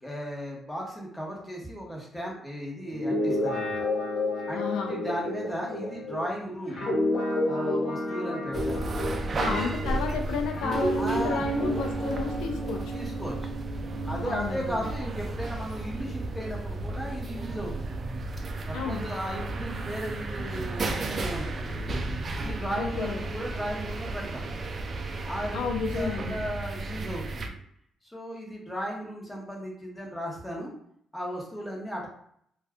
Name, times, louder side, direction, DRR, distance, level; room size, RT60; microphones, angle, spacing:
voice 1, 0.0-3.7 4.5-4.6 4.9-6.8 7.5-8.9 9.4-9.7 11.0-11.4 12.9-13.5 14.0-17.9 18.7-21.9 22.4-24.4 25.3-25.7 25.9-27.5 28.0-30.7 31.1-32.1, equal, 10° left, -2 dB, 1.1 m, -35 dB
Guitar, 2.9-10.1 10.6-14.3, left 1 dB, 50° left, 1.1 m, -30 dB
voice 2, 4.5-5.0 9.4-13.0 14.2-14.8 18.7-19.1 22.8-23.3 25.5-26.4, left 5 dB, 90° left, 3 dB, 0.4 m, -32 dB
sound 1, 8.5-27.5, right 2 dB, 40° right, 0.4 m, -34 dB
2.5 x 2.3 x 3.4 m, 0.67 s
cardioid pair, 90°, 0 cm